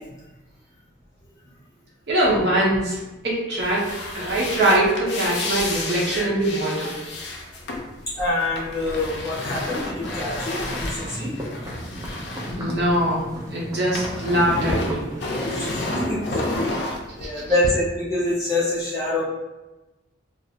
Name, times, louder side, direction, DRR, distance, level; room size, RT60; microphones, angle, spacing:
voice 1, 2.1-7.0 12.4-15.1 17.2-17.4, right 1 dB, 60° right, -6 dB, 0.7 m, -23 dB
sound 1, 3.6-13.4 13.6-17.7, left 2 dB, 65° left, 0.4 m, -30 dB
voice 2, 8.2-11.3 12.0-12.2 15.5-16.4 17.2-19.2, left 2 dB, 20° left, -9 dB, 0.7 m, -26 dB
sound 2, 10.0-15.8, right 1 dB, 15° right, 0.4 m, -36 dB
2.4 x 2.0 x 2.7 m, 1.0 s
head